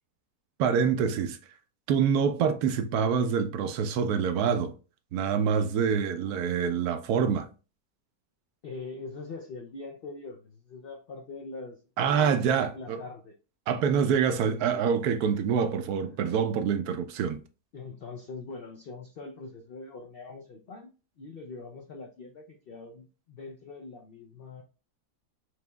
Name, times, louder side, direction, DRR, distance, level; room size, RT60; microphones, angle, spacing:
voice 1, 0.6-1.4 1.9-4.8 5.1-7.5 12.0-13.0 13.7-17.4, right 7 dB, 75° right, 1.1 m, -26 dB
voice 2, 8.6-12.4 12.7-13.4 16.0-16.3 17.7-20.9 21.2-24.6, left 3 dB, 70° left, 0.5 m, -43 dB
6.0 x 2.9 x 2.2 m
omnidirectional pair, 1.6 m